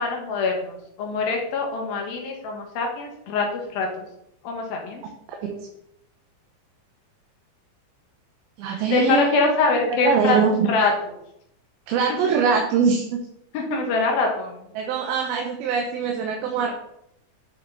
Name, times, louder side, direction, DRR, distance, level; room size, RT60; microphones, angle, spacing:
voice 1, 0.0-3.9 4.4-5.0 8.7-10.4 10.7-10.9 13.5-14.7, left 4 dB, 75° left, 1 dB, 3.3 m, -24 dB
voice 2, 8.6-9.5 10.0-10.7 11.9-13.2 14.8-16.7, right 6 dB, 80° right, 1 dB, 2.9 m, -22 dB
10.0 x 6.7 x 4.1 m, 0.78 s
omnidirectional pair, 4.4 m